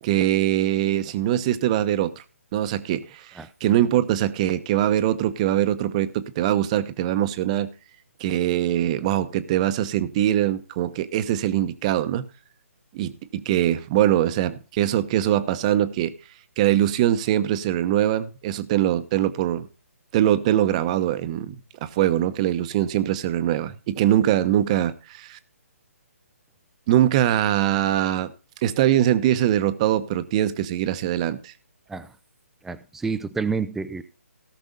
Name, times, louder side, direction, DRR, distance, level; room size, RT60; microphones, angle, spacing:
voice 1, 0.0-2.1 2.5-3.3 3.6-7.7 8.2-12.2 12.9-16.1 16.6-19.7 20.1-21.6 21.8-25.4 26.9-28.3 28.6-31.5, right 12 dB, 25° right, 12 dB, 0.9 m, -22 dB
voice 2, 32.6-34.0, right 5 dB, 5° right, 13 dB, 0.5 m, -28 dB
17.5 x 6.1 x 3.9 m, 0.35 s
figure-of-eight pair, 150°, 8 cm